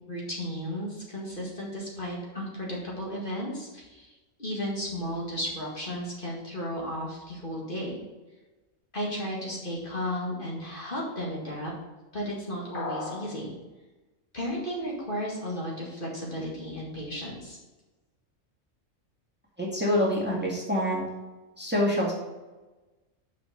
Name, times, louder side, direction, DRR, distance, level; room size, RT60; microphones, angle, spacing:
voice 1, 0.0-8.0 8.9-11.7 12.1-13.5 14.3-17.6, equal, 40° left, -4 dB, 2.2 m, -34 dB
sound 1, 12.7-13.3, left 3 dB, 85° left, 3.1 m, -34 dB
voice 2, 19.6-21.1 21.6-22.1, left 1 dB, 10° right, -3 dB, 1.9 m, -26 dB
6.3 x 6.1 x 6.8 m, 1.2 s
omnidirectional pair, 1.4 m